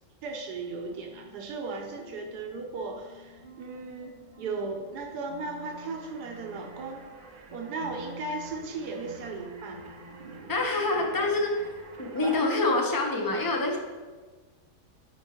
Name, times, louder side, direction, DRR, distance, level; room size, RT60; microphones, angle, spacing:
voice 1, 0.2-7.0 7.5-10.0 11.2-11.3, right 3 dB, 85° right, 2 dB, 1.3 m, -36 dB
sound 1, 0.6-12.3, right 1 dB, 30° right, 0.8 m, -49 dB
sound 2, 5.6-12.6, right 4 dB, 60° right, 0.5 m, -48 dB
voice 2, 10.5-11.5 12.0-13.8, left 2 dB, 20° left, 1 dB, 0.5 m, -26 dB
6.2 x 5.2 x 4.4 m, 1.3 s
omnidirectional pair, 1.7 m